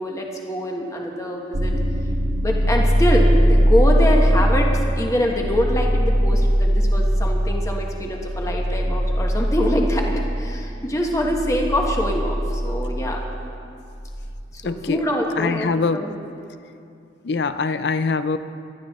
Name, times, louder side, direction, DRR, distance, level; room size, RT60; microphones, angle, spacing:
voice 1, 0.0-1.7 2.4-13.2 14.5-16.1, equal, 20° left, 0 dB, 1.2 m, -24 dB
sound 1, 1.5-14.3, equal, 80° right, 1.8 m, -21 dB
voice 2, 14.6-15.0 15.4-16.1 17.2-18.4, left 4 dB, 65° left, 11 dB, 0.5 m, -23 dB
19.5 x 12.0 x 3.6 m, 2.5 s
head